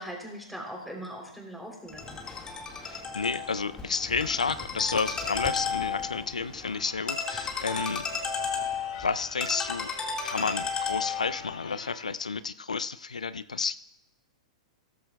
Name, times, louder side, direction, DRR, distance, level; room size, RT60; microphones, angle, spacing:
voice 1, 0.0-2.1, equal, ahead, 0 dB, 3.3 m, -40 dB
Ringtone, 1.9-11.4, left 5 dB, 20° left, 1.8 m, -34 dB
voice 2, 2.8-8.0 9.0-9.9 10.2-13.8, left 5 dB, 90° left, 15 dB, 0.3 m, -31 dB
Church bell / Car / Alarm, 6.6-12.2, left 7 dB, 60° left, 1.7 m, -47 dB
15.5 x 13.5 x 2.3 m, 0.85 s
hypercardioid pair, 110°, 4 cm